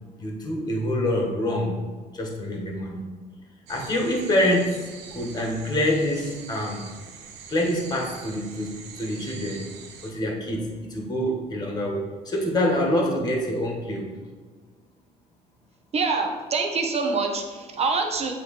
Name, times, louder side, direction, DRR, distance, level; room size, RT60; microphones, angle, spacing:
voice 1, 0.2-1.8 2.1-3.0 3.7-6.8 7.5-9.7 10.0-14.1, left 1 dB, 25° left, 0 dB, 1.5 m, -26 dB
sound 1, 3.7-10.1, right 6 dB, 85° right, 0.8 m, -44 dB
voice 2, 15.9-18.3, right 4 dB, 40° right, 3 dB, 1.0 m, -25 dB
8.0 x 3.1 x 4.2 m, 1.5 s
cardioid pair, 110°, 17 cm